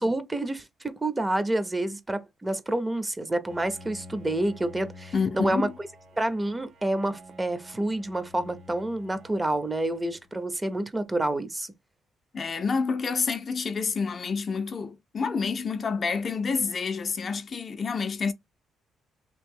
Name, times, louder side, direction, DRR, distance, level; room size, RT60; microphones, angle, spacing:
voice 1, 0.0-5.7 6.2-11.7, right 1 dB, 20° right, 0.5 m, -28 dB
Bowed string instrument, 3.4-10.5, left 2 dB, 65° right, 1.4 m, -49 dB
voice 2, 5.1-5.7 12.3-18.3, left 5 dB, 45° left, 0.4 m, -28 dB
2.9 x 2.5 x 3.5 m
cardioid pair, 90°, 0 cm